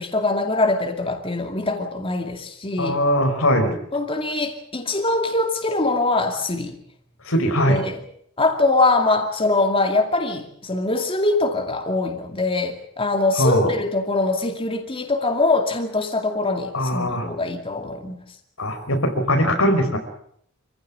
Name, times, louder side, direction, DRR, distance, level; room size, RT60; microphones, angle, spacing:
voice 1, 0.0-3.0 3.9-6.8 7.7-8.0 8.4-18.2, left 2 dB, 25° left, 4 dB, 2.3 m, -23 dB
voice 2, 2.8-3.8 7.3-7.8 13.4-13.7 16.7-17.3 18.6-20.0, equal, 90° left, 6 dB, 5.0 m, -20 dB
26.5 x 15.5 x 8.7 m, 0.69 s
head